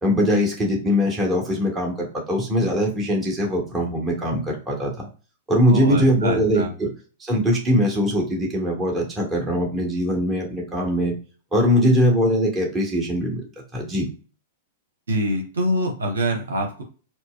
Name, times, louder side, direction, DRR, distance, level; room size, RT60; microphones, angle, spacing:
voice 1, 0.0-5.1 5.5-6.9 7.2-11.1 11.5-13.5 13.7-14.1, equal, 15° right, -2 dB, 1.5 m, -21 dB
voice 2, 5.7-6.7 15.1-16.8, equal, 75° right, 2 dB, 0.9 m, -25 dB
4.4 x 2.1 x 2.4 m, 0.37 s
figure-of-eight pair, 100°, 0 cm